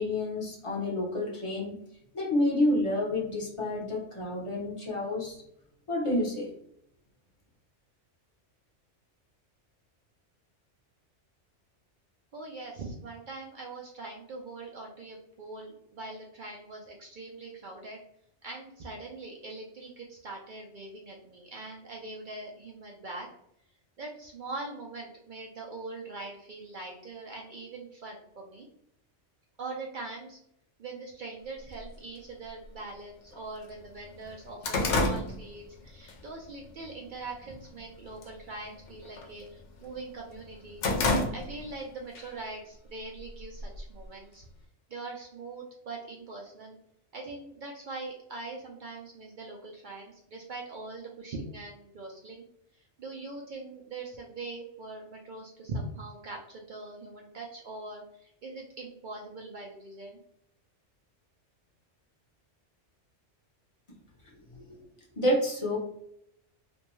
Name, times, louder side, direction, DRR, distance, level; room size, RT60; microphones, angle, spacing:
voice 1, 0.0-1.8 2.1-5.4 5.9-6.5 64.5-64.8 65.2-65.8, left 1 dB, 30° left, -4 dB, 0.7 m, -29 dB
voice 2, 12.3-18.0 18.4-23.3 24.0-28.7 29.6-30.4 30.8-40.9 41.3-44.5 44.9-46.8 47.1-52.4 52.7-60.2, right 3 dB, 60° right, -1 dB, 0.5 m, -42 dB
sound 1, 31.8-31.9 32.8-32.9 33.3-33.4 33.8-36.2 36.6-36.9 37.3-37.8 38.1-38.4 38.7-39.9 40.3-41.8 42.2-42.3 43.2-44.1, left 2 dB, 75° left, 0.9 m, -30 dB
2.6 x 2.2 x 3.0 m, 0.71 s
omnidirectional pair, 1.2 m